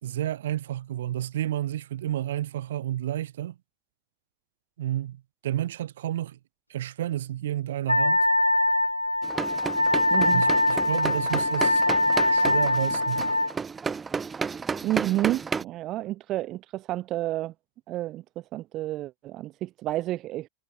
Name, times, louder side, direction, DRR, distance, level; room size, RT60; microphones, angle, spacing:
voice 1, 0.0-3.6 4.8-6.4 6.7-8.3 10.3-11.9 12.3-13.4, right 12 dB, 60° right, 3.5 m, -31 dB
Wind instrument woodwind instrument, 7.9-13.5, left 2 dB, 85° left, 1.6 m, -23 dB
sound 1, 9.2-15.6, right 5 dB, 15° right, 2.9 m, -32 dB
voice 2, 10.1-10.4 14.8-17.5 17.9-20.5, right 15 dB, 35° right, 1.0 m, -30 dB
figure-of-eight pair, 90°, 0 cm